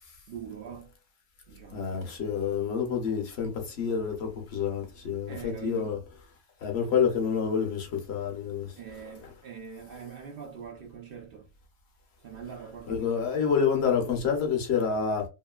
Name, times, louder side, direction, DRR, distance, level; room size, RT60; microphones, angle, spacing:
voice 1, 0.3-0.9 1.5-1.9 5.3-6.0 8.8-11.5 12.2-13.3, right 7 dB, 75° right, 0.5 m, -42 dB
voice 2, 1.7-3.5 3.8-6.0 6.6-8.7 12.9-15.2, left 6 dB, 55° left, 0.9 m, -28 dB
2.9 x 2.6 x 2.3 m
omnidirectional pair, 1.6 m